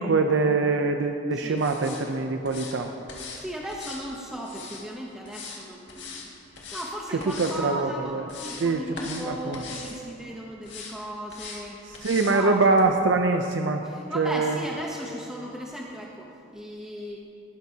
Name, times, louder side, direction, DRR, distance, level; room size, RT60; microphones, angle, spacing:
voice 1, 0.0-2.9 7.3-8.3 8.6-9.6 12.0-13.8 14.1-14.6, right 3 dB, 90° right, 5 dB, 0.6 m, -24 dB
sound 1, 1.6-2.0 2.4-2.7 3.1-3.4 3.7-4.8 5.3-5.6 5.9-6.3 6.5-6.9 7.2-7.6 8.0-8.7 9.0-9.3 9.5-9.9 10.6-10.9 11.3-11.6 11.9-12.4 12.8-12.9, left 5 dB, 75° left, 1.9 m, -40 dB
voice 2, 3.4-11.8 12.2-12.8 13.8-17.2, equal, 5° right, -3 dB, 0.8 m, -37 dB
18.5 x 10.5 x 2.8 m, 2.8 s
head